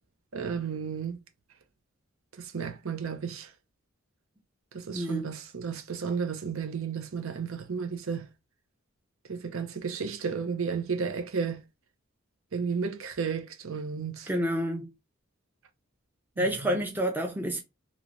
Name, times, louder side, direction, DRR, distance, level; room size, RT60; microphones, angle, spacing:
voice 1, 0.3-1.2 2.4-3.5 4.7-8.3 9.3-11.6 12.5-14.3 16.4-16.8, right 6 dB, 75° right, 0.6 m, -33 dB
voice 2, 4.9-5.3 14.3-14.9 16.4-17.6, equal, 10° right, 0.5 m, -29 dB
3.1 x 2.9 x 2.5 m
head